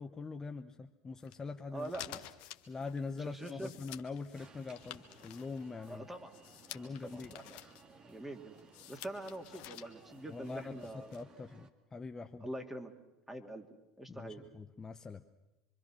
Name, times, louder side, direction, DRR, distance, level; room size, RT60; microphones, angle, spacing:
voice 1, 0.0-1.9 2.7-6.1 6.7-7.3 10.3-12.5 14.1-15.2, left 4 dB, 20° left, 6 dB, 1.0 m, -43 dB
sound 1, 1.2-11.2, left 12 dB, 55° left, 1.5 m, -52 dB
voice 2, 1.7-2.2 3.2-3.7 5.9-6.3 6.7-7.6 8.0-8.6 8.9-11.2 12.4-12.9 13.3-13.7 14.0-14.4, right 1 dB, 10° right, 4 dB, 2.9 m, -44 dB
Alarm, 4.3-11.7, right 5 dB, 35° right, 2.2 m, -60 dB
25.5 x 24.5 x 6.3 m, 1.0 s
hypercardioid pair, 75°, 3 cm